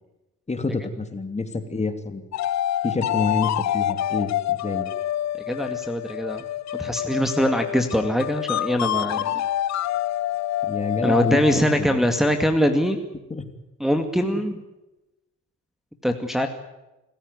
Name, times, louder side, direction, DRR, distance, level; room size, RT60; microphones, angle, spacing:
voice 1, 0.5-2.2 2.8-4.9 10.6-12.0 13.3-13.5 14.2-14.4, left 3 dB, 20° left, 8 dB, 2.9 m, -28 dB
sound 1, 2.3-11.8, left 12 dB, 65° left, 0.8 m, -27 dB
voice 2, 5.5-6.4 6.7-9.5 11.0-13.0 13.8-14.6 16.0-16.5, equal, ahead, 4 dB, 2.2 m, -22 dB
27.0 x 15.0 x 9.6 m, 1.0 s
cardioid pair, 90°, 30 cm